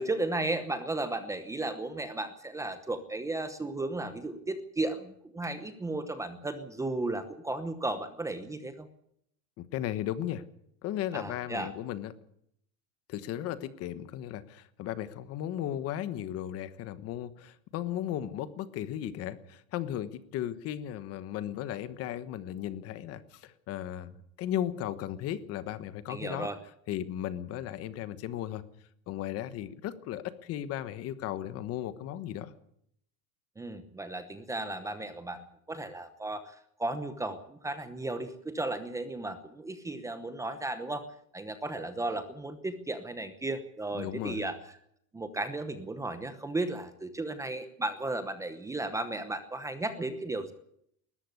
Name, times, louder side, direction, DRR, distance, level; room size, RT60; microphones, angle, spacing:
voice 1, 0.0-8.9 11.1-11.7 26.1-26.6 33.6-41.1 41.3-44.6 45.1-50.5, right 2 dB, 10° right, 10 dB, 0.9 m, -35 dB
voice 2, 9.6-10.4 10.8-12.1 13.1-24.1 24.4-26.5 26.9-28.6 29.1-32.5 43.9-44.5, left 11 dB, 35° left, 14 dB, 1.2 m, -36 dB
20.0 x 14.0 x 9.6 m, 0.71 s
cardioid pair, 170°, 40 cm